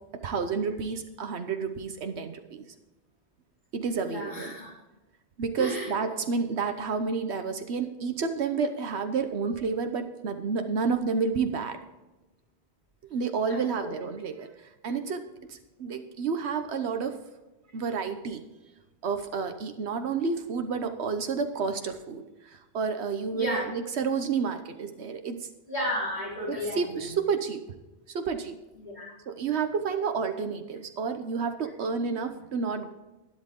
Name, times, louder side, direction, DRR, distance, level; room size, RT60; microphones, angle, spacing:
voice 1, 0.2-2.7 3.7-4.5 5.4-11.8 13.1-15.2 15.5-17.2 17.7-18.5 19.0-25.5 26.5-27.6 28.1-28.6 29.3-32.9, right 5 dB, 85° right, 7 dB, 1.2 m, -30 dB
voice 2, 4.0-4.7 5.6-6.2 13.5-13.9 23.3-23.6 25.7-27.1 28.7-29.0, equal, 40° left, -5 dB, 4.5 m, -33 dB
12.0 x 11.0 x 3.7 m, 1.1 s
omnidirectional pair, 1.1 m